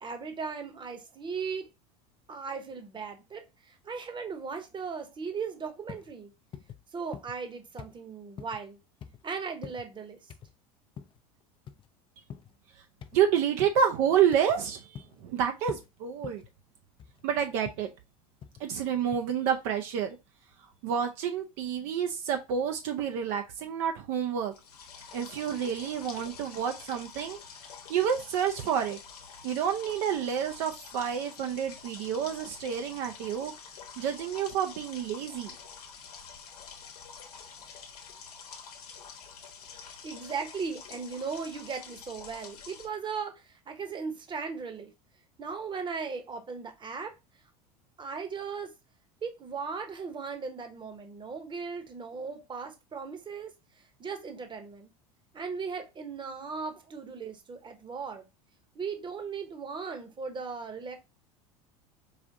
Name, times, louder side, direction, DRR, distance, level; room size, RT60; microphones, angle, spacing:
voice 1, 0.0-1.7 2.3-6.3 6.9-8.8 9.2-10.2 39.8-44.9 45.4-47.1 48.0-48.7 49.2-53.5 54.0-54.9 55.3-58.3 58.7-61.0, right 5 dB, 25° right, 1.0 m, -37 dB
sound 1, 5.9-6.1 6.5-6.8 7.1-7.5 7.8-8.0 8.4-8.6 9.0-9.2 9.6-9.9 10.3-10.5 11.0-11.2 11.7-11.9 12.3-12.5 13.0-13.2 13.6-13.8 14.3-14.6 14.9-15.3 15.7-15.9 16.2-16.5 17.0-17.2 17.6-17.9 18.4-18.7 19.1-19.2, left 8 dB, 25° left, 0.5 m, -44 dB
voice 2, 13.1-16.4 17.2-17.9 18.6-20.2 20.8-24.5 25.1-27.4 27.9-29.0 29.4-33.5 34.0-35.5, right 8 dB, 60° right, 0.6 m, -29 dB
sound 2, 24.5-42.9, left 6 dB, 85° left, 0.9 m, -47 dB
4.9 x 2.5 x 2.6 m
hypercardioid pair, 90°, 19 cm